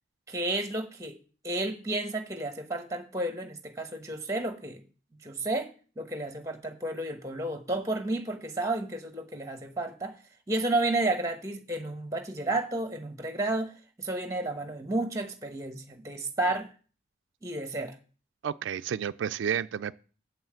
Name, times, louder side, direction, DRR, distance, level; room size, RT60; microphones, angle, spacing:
voice 1, 0.3-1.2 1.4-4.8 5.2-5.7 6.0-10.1 10.5-16.7 17.4-18.0, right 2 dB, 15° right, 1.0 m, -31 dB
voice 2, 18.4-19.9, right 8 dB, 85° right, 0.3 m, -31 dB
7.5 x 5.6 x 7.6 m
head